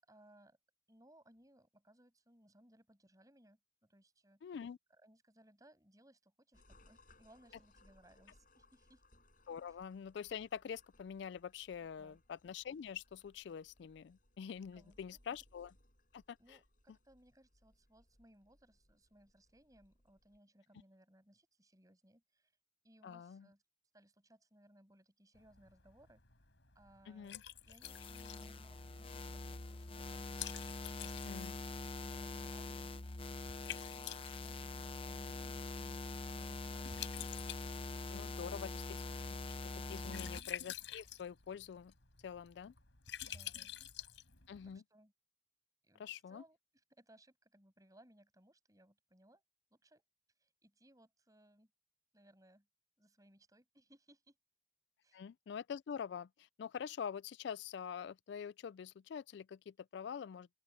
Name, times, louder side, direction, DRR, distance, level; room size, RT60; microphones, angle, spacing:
voice 1, 0.1-0.6 0.9-4.5 4.9-9.0 9.7-9.8 12.0-12.2 14.7-15.0 16.4-22.5 22.8-23.6 23.9-26.2 26.7-30.3 30.9-31.1 31.8-33.1 33.6-37.3 43.2-44.1 44.6-45.1 45.8-49.4 49.7-50.0 50.4-51.7 52.1-52.7 53.0-54.4 55.0-55.2, right 1 dB, 20° right, 7.0 m, -66 dB
voice 2, 4.4-4.8 9.5-15.7 16.1-16.6 23.0-23.5 27.1-27.4 31.3-31.5 38.1-39.0 39.7-41.9 42.2-42.7 44.5-44.8 46.0-46.4 55.1-60.5, left 7 dB, 65° left, 0.3 m, -45 dB
sound 1, 6.5-20.4, left 1 dB, 45° left, 7.9 m, -69 dB
Liquid, 25.3-44.8, left 11 dB, 80° left, 4.1 m, -51 dB
sound 2, 27.8-40.4, left 3 dB, 30° left, 0.7 m, -44 dB
open air
head